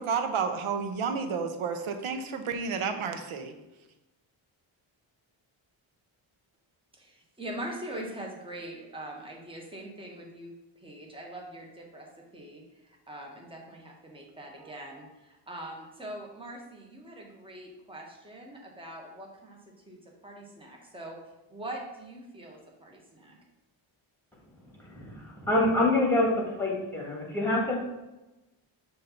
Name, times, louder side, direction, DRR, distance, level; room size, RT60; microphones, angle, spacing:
voice 1, 0.0-3.5, right 6 dB, 70° right, 7 dB, 0.9 m, -31 dB
voice 2, 6.9-12.1 12.3-21.2 21.5-23.4, right 1 dB, 10° right, -1 dB, 1.2 m, -43 dB
voice 3, 24.8-26.3 26.6-27.8, left 2 dB, 5° left, -2 dB, 1.9 m, -26 dB
6.5 x 2.8 x 5.7 m, 1.0 s
cardioid pair, 90°, 50 cm